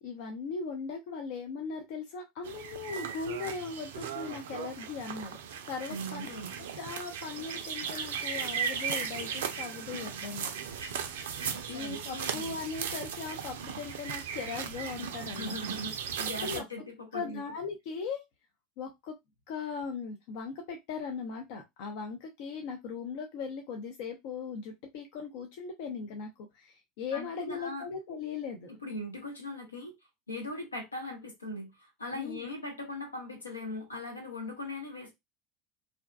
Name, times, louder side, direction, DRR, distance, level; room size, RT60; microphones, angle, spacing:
voice 1, 0.0-5.4 5.7-6.3 6.6-10.5 11.7-15.5 16.4-16.6 17.1-18.2 18.8-19.2 19.5-28.7 32.1-32.4, left 5 dB, 55° left, 0.5 m, -39 dB
sound 1, 2.4-16.6, right 7 dB, 65° right, 0.3 m, -37 dB
voice 2, 5.9-6.5 11.2-12.6 15.3-17.4 27.1-27.8 28.8-29.9 30.3-35.1, left 1 dB, 85° left, 0.8 m, -40 dB
2.5 x 2.2 x 2.2 m
figure-of-eight pair, 75°, 0 cm